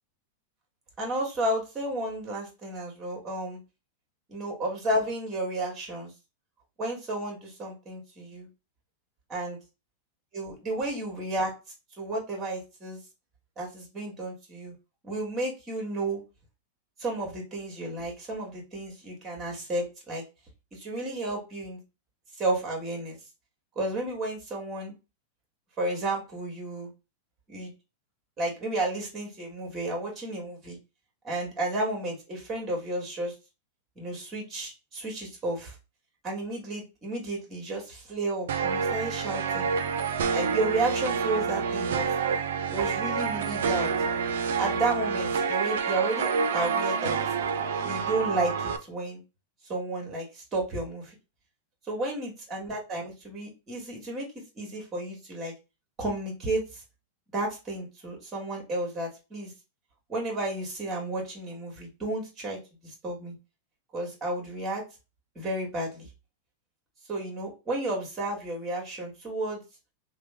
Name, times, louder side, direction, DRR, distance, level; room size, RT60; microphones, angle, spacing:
voice 1, 1.0-3.6 4.3-6.1 6.8-8.5 9.3-9.5 10.3-11.5 12.0-13.0 13.6-14.7 15.0-16.2 17.0-20.2 20.7-21.8 22.4-23.2 23.8-24.9 25.8-26.9 27.5-27.7 28.4-30.8 31.2-33.3 34.0-35.7 36.2-39.7 40.3-42.1 42.7-43.9 44.6-47.2 47.8-49.2 49.6-51.1 51.9-54.3 54.6-55.5 56.0-56.8 57.3-59.5 60.1-63.4 63.9-64.8 65.4-66.1 67.1-69.6, right 2 dB, 25° right, 0 dB, 1.8 m, -32 dB
sound 1, 38.5-48.8, right 5 dB, 75° right, 0.5 m, -28 dB
3.3 x 2.2 x 3.6 m, 0.29 s
hypercardioid pair, 120°, 0 cm